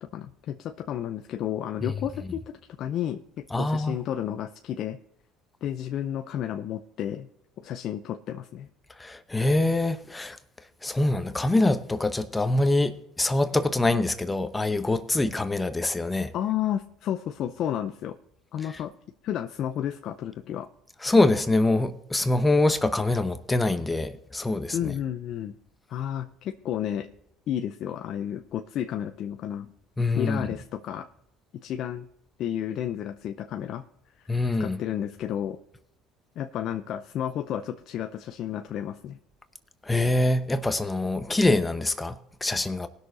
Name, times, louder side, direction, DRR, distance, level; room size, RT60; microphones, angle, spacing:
voice 1, 0.0-5.0 5.6-7.3 7.6-8.7 16.3-18.2 18.5-18.9 19.2-20.7 24.7-25.5 25.9-27.1 27.5-29.7 30.2-31.1 31.6-32.1 32.4-33.8 34.2-34.3 34.6-35.6 36.4-39.2, left 10 dB, 60° left, 0.6 m, -32 dB
voice 2, 3.5-4.0 9.0-10.4 10.8-16.3 21.0-24.9 30.0-30.5 34.3-34.8 39.8-42.9, left 2 dB, 15° left, 0.9 m, -24 dB
19.0 x 6.5 x 4.0 m
supercardioid pair, 95°, 0 cm